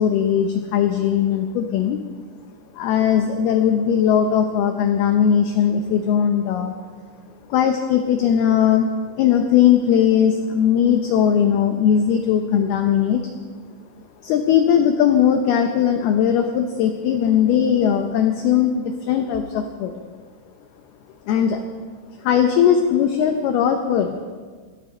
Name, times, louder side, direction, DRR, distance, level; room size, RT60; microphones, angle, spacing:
voice 1, 0.0-2.0 2.7-6.7 7.5-8.9 9.2-13.2 14.2-19.9 21.3-21.6 22.2-24.2, left 8 dB, 90° left, 5 dB, 2.2 m, -19 dB
18.5 x 13.0 x 4.4 m, 1.5 s
omnidirectional pair, 5.6 m